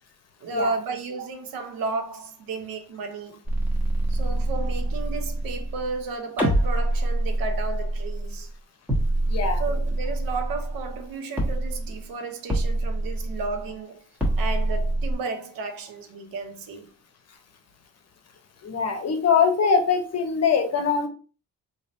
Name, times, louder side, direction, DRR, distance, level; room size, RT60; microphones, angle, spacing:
voice 1, 0.4-3.4 4.1-8.5 9.6-14.0 14.4-16.9, right 3 dB, 85° right, 0.7 m, -33 dB
sound 1, 3.5-6.0 6.4-8.5 8.9-11.1 11.4-12.0 12.5-13.7 14.2-15.1, right 1 dB, 5° right, 1.2 m, -26 dB
voice 2, 9.3-9.6 18.6-21.1, left 6 dB, 45° left, 0.8 m, -22 dB
3.2 x 2.8 x 2.6 m
cardioid pair, 95°, 34 cm